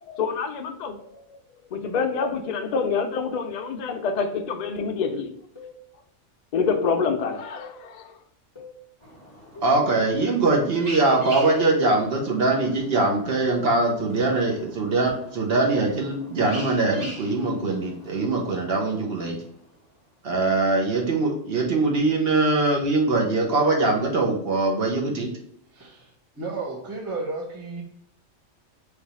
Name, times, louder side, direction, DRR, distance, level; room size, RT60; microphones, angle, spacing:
voice 1, 0.0-1.4 1.7-5.3 6.5-8.1, left 5 dB, 80° left, 0.4 m, -27 dB
sound 1, 4.6-4.8 5.6-5.8 6.6-6.8 7.6-7.8 8.6-8.8 9.6-9.9, left 3 dB, 30° left, 0.6 m, -43 dB
sound 2, 9.0-19.9, right 1 dB, 35° right, 1.0 m, -44 dB
voice 2, 9.6-19.4 20.2-25.3, right 3 dB, 60° right, 0.8 m, -22 dB
voice 3, 25.7-26.1 26.4-27.8, right 3 dB, 15° right, 0.6 m, -32 dB
3.3 x 2.3 x 4.0 m
omnidirectional pair, 1.3 m